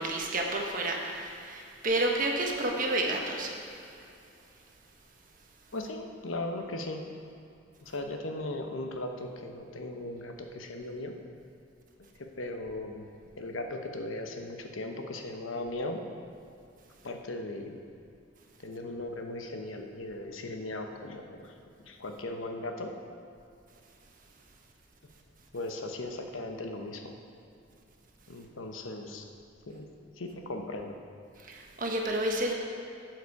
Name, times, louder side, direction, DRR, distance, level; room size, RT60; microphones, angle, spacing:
voice 1, 0.0-3.6 31.4-32.5, right 1 dB, 45° right, 1 dB, 1.2 m, -30 dB
voice 2, 5.7-7.0 7.8-11.2 12.2-13.1 13.4-16.0 17.0-17.8 18.6-21.5 21.9-22.9 25.5-27.2 28.3-29.3 29.7-29.9 30.1-31.0, left 2 dB, 90° left, 4 dB, 1.0 m, -38 dB
11.5 x 7.9 x 4.8 m, 2.6 s
head